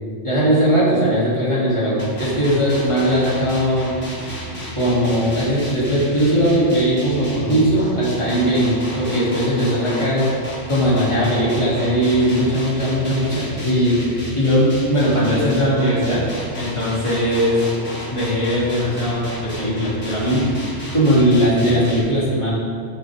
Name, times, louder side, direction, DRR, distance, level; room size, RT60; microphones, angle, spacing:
voice 1, 0.2-3.9 4.8-10.3 10.7-16.2 16.6-17.6 18.1-20.5 20.9-22.5, equal, 25° left, -8 dB, 3.5 m, -19 dB
sound 1, 2.0-22.0, equal, 85° left, 3.0 m, -32 dB
13.5 x 9.2 x 3.8 m, 2.1 s
omnidirectional pair, 1.2 m